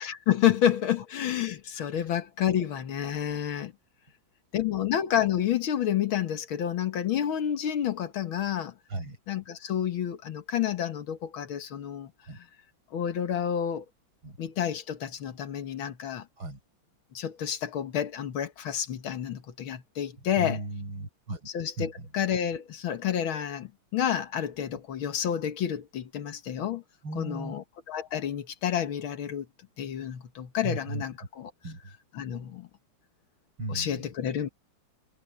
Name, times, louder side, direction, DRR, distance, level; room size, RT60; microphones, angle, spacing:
voice 1, 0.3-3.7 4.5-8.7 9.3-12.1 12.9-13.9 14.4-16.3 17.1-20.6 21.5-26.8 27.2-29.5 29.8-31.1 32.2-32.7 33.7-34.5, left 10 dB, 85° left, 2.2 m, -29 dB
voice 2, 20.2-21.5 21.8-22.1 24.7-24.8 27.0-27.6 30.6-31.0 31.6-32.0 33.6-34.1, right 2 dB, 90° right, 7.2 m, -37 dB
omnidirectional pair, 2.2 m